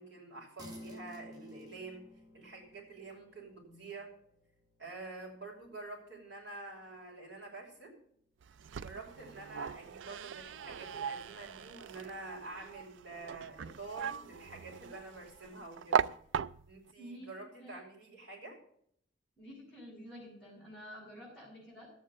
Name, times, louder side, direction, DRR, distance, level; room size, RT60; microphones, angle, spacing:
voice 1, 0.0-2.1 2.3-4.1 4.8-8.0 8.8-16.1 16.7-18.6, right 3 dB, 65° right, -2 dB, 5.8 m, -48 dB
sound 1, 0.6-10.3, equal, 20° right, 1.6 m, -56 dB
sound 2, 8.4-16.9, right 7 dB, 85° right, 0.4 m, -38 dB
voice 2, 17.0-17.3 17.6-17.8 19.4-21.9, equal, ahead, -12 dB, 6.5 m, -49 dB
13.0 x 8.7 x 5.4 m, 0.67 s
head